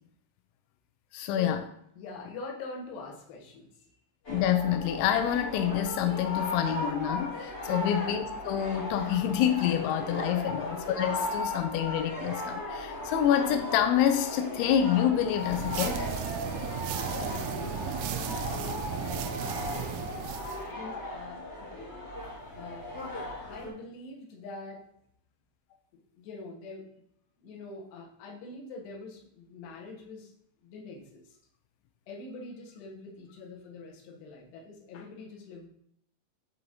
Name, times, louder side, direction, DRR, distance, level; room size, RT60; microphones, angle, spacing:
voice 1, 1.1-1.6 4.3-16.0, left 10 dB, 90° left, 7 dB, 2.6 m, -27 dB
voice 2, 2.0-3.9 7.7-7.9 10.3-10.5 17.1-19.5 20.7-21.9 22.6-22.9 23.4-24.8 25.9-27.0 27.4-30.3 30.6-31.4 32.1-35.7, left 3 dB, 65° left, -2 dB, 3.0 m, -44 dB
sound 1, 4.2-23.7, left 2 dB, 30° left, 2.5 m, -37 dB
sound 2, 15.4-20.6, right 9 dB, 85° right, 2.8 m, -35 dB
7.7 x 5.5 x 2.7 m, 0.72 s
omnidirectional pair, 5.9 m